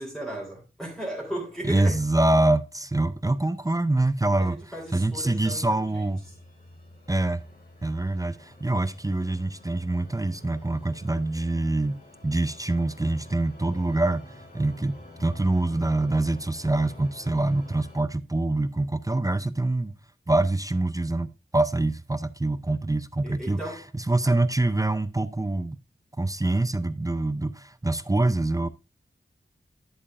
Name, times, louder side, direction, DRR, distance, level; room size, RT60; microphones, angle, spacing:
voice 1, 0.0-2.0 4.2-6.0 23.2-23.9, right 1 dB, ahead, 3.4 m, -36 dB
voice 2, 1.6-4.6 4.9-6.2 7.1-7.4 7.8-20.0 20.3-25.8 26.2-28.7, right 2 dB, 15° right, 0.5 m, -25 dB
sound 1, 3.6-18.0, left 2 dB, 45° left, 2.9 m, -50 dB
10.5 x 8.0 x 2.4 m
wide cardioid pair, 70°, 21 cm